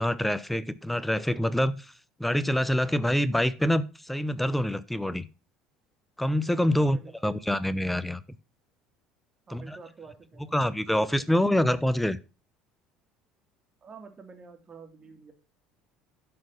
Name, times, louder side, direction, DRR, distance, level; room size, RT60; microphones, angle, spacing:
voice 1, 0.0-1.9 2.2-5.3 6.2-7.0 7.2-8.2 9.5-9.8 10.5-12.2, left 1 dB, 5° left, 17 dB, 0.7 m, -26 dB
voice 2, 6.8-7.3 9.5-11.6 13.8-15.3, right 5 dB, 30° right, 5 dB, 2.5 m, -49 dB
12.0 x 4.8 x 5.6 m, 0.31 s
figure-of-eight pair, 60°, 3 cm